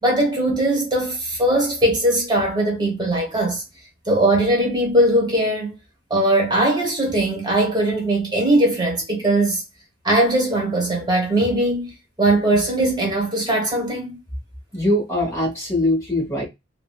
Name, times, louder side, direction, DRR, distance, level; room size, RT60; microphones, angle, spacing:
voice 1, 0.0-3.6 4.1-5.7 6.1-9.6 10.0-11.9 12.2-14.2, right 1 dB, 25° right, 1.0 m, -20 dB
voice 2, 14.7-16.4, left 1 dB, 15° left, 0.9 m, -22 dB
3.6 x 2.1 x 2.3 m
head